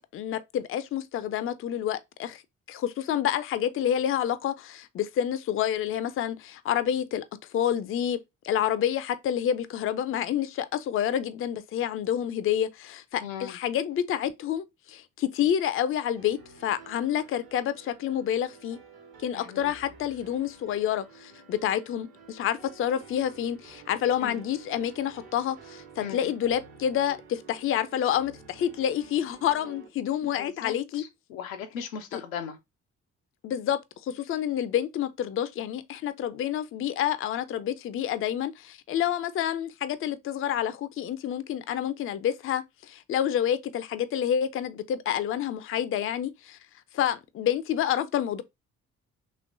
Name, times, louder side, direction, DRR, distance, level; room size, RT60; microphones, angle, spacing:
voice 1, 0.1-2.4 2.7-7.2 7.5-8.2 8.4-18.8 19.2-31.0 32.1-32.2 33.4-46.6 46.9-48.4, left 10 dB, 35° left, 0.4 m, -28 dB
voice 2, 13.2-13.6 19.3-19.7 24.2-24.4 26.0-26.3 30.2-32.6, left 7 dB, 80° left, 0.6 m, -38 dB
sound 1, 16.2-29.9, right 5 dB, 60° right, 1.2 m, -51 dB
3.1 x 3.1 x 2.5 m
figure-of-eight pair, 40°, 40 cm